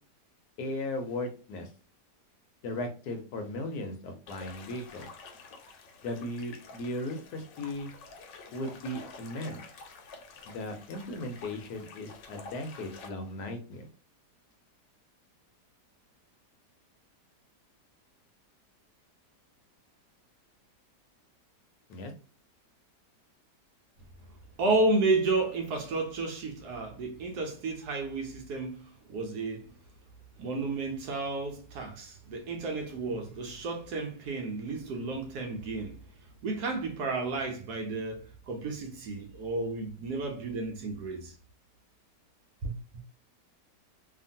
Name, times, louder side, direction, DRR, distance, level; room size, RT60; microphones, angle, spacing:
voice 1, 0.6-1.7 2.6-5.1 6.0-7.9 8.5-9.6 10.5-13.9 21.9-22.1, left 1 dB, 70° left, 1.1 m, -37 dB
nice water seamless loop, 4.3-13.1, left 4 dB, 90° left, 1.3 m, -49 dB
voice 2, 24.6-29.7 30.4-36.0 36.4-41.3 42.6-42.8, right 3 dB, 70° right, 1.1 m, -32 dB
2.8 x 2.5 x 2.6 m
omnidirectional pair, 1.9 m